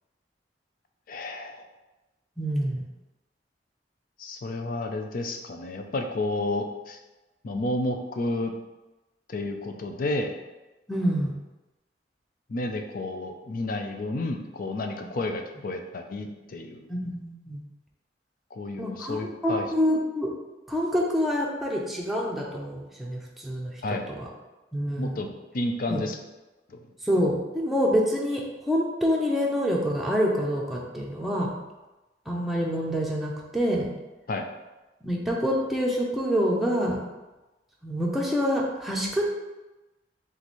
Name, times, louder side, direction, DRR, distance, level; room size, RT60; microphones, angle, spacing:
voice 1, 1.1-1.6 4.2-7.0 7.4-8.5 9.3-10.3 12.5-16.9 18.5-19.7 23.8-24.0 25.0-26.2 26.7-26.9 34.3-34.5, left 2 dB, 50° left, 4 dB, 0.5 m, -31 dB
voice 2, 2.4-2.8 10.9-11.3 16.9-17.6 18.8-20.3 20.7-23.7 24.2-24.3 24.7-25.2 25.9-26.0 27.0-31.5 32.3-33.9 35.0-37.0 37.8-39.3, equal, ahead, -3 dB, 0.6 m, -26 dB
3.5 x 3.2 x 4.1 m, 1.1 s
head